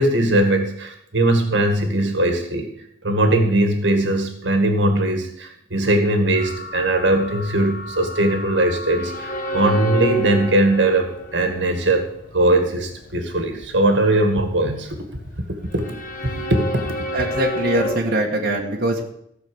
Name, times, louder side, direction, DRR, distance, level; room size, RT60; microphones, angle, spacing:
voice 1, 0.0-2.7 3.0-12.0 12.3-14.9 15.7-15.8 16.5-17.0, right 1 dB, 75° right, 5 dB, 2.1 m, -20 dB
sound 1, 6.3-18.0, equal, 50° left, 1.7 m, -30 dB
voice 2, 17.1-19.0, right 1 dB, 55° right, -1 dB, 2.0 m, -22 dB
16.5 x 6.2 x 8.0 m, 0.74 s
head